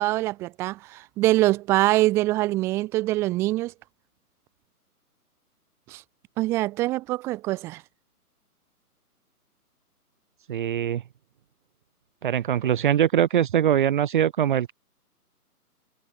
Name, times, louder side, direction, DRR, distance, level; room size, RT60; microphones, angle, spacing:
voice 1, 0.0-3.7 5.9-6.0 6.4-7.8, right 18 dB, 5° right, 0.8 m, -24 dB
voice 2, 10.5-11.0 12.2-14.7, right 10 dB, 30° right, 1.5 m, -22 dB
hypercardioid pair, 155°, 46 cm